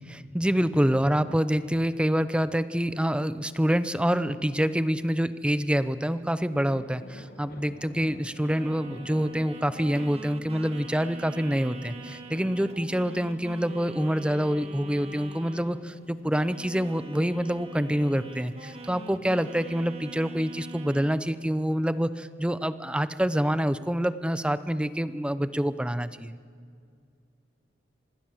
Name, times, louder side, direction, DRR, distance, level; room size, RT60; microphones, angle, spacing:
voice 1, 0.1-26.4, equal, 5° right, 13 dB, 0.7 m, -26 dB
sound 1, 5.7-22.0, left 1 dB, 55° left, 2.0 m, -53 dB
sound 2, 8.4-16.0 16.3-21.2, right 2 dB, 35° right, 1.8 m, -44 dB
26.0 x 19.5 x 7.3 m, 2.2 s
head